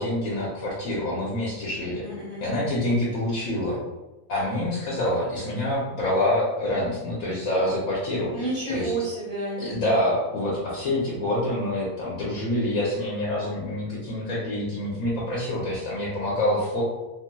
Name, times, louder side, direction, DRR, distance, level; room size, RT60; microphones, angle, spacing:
voice 1, 0.0-2.0 2.4-3.8 4.3-8.9 9.6-16.8, left 1 dB, 60° left, -6 dB, 1.1 m, -26 dB
voice 2, 2.0-2.4 8.3-9.6, right 2 dB, 40° left, -9 dB, 0.4 m, -30 dB
3.0 x 2.9 x 2.2 m, 1.0 s
omnidirectional pair, 1.7 m